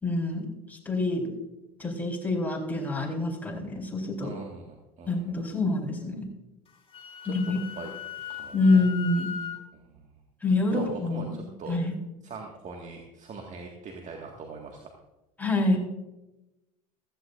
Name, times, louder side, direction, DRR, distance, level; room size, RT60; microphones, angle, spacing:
voice 1, 0.0-1.3 1.8-4.3 5.1-6.3 7.3-7.6 8.5-9.3 10.4-11.3 11.7-11.9 15.4-15.8, left 2 dB, 10° left, 0 dB, 4.1 m, -26 dB
voice 2, 4.2-5.4 7.2-7.9 8.3-8.8 9.7-10.1 10.7-11.8 12.2-15.0, right 4 dB, 40° right, 1 dB, 1.8 m, -41 dB
Wind instrument woodwind instrument, 6.7-9.6, left 7 dB, 30° left, 3.2 m, -38 dB
15.5 x 14.5 x 2.6 m, 0.98 s
hypercardioid pair, 70°, 19 cm